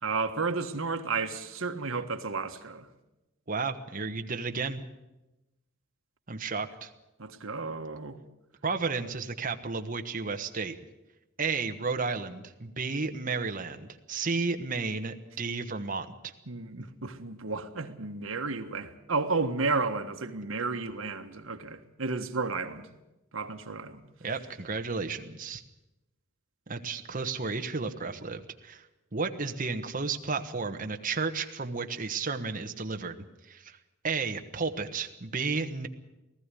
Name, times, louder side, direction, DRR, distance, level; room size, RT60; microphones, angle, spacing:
voice 1, 0.0-2.9 7.2-8.2 16.5-22.9 23.3-24.0, right 4 dB, 75° right, 1.5 m, -32 dB
voice 2, 3.5-4.8 6.3-6.9 8.6-10.8 11.4-16.3 24.2-25.6 26.7-28.9 29.1-33.8 34.0-35.9, right 4 dB, 40° right, 1.2 m, -33 dB
19.0 x 14.5 x 9.9 m
head